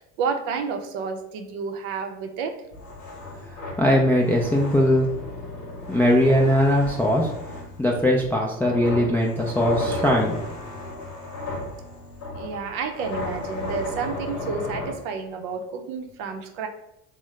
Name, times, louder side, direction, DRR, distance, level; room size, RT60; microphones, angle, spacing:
voice 1, 0.2-2.6 12.3-16.7, right 5 dB, 60° right, 6 dB, 0.6 m, -30 dB
sound 1, 2.7-14.9, left 2 dB, 55° left, 1.0 m, -34 dB
voice 2, 3.8-5.1 5.9-7.3 7.8-10.4, equal, 5° left, -2 dB, 0.3 m, -20 dB
3.5 x 2.1 x 3.2 m, 0.86 s
hypercardioid pair, 70°, 40 cm